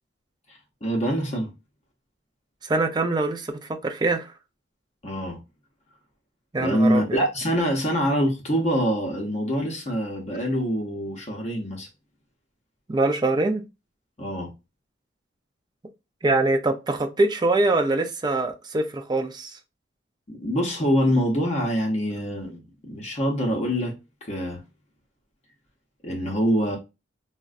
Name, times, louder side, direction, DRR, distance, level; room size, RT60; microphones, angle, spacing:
voice 1, 0.5-1.5 5.0-5.4 6.6-11.9 14.2-14.5 20.3-23.9 24.2-24.6 26.0-26.8, equal, 35° left, 0.7 m, -25 dB
voice 2, 2.6-4.3 6.5-7.2 12.9-13.6 16.2-19.6, right 2 dB, 20° right, 0.4 m, -24 dB
3.7 x 2.1 x 2.4 m
head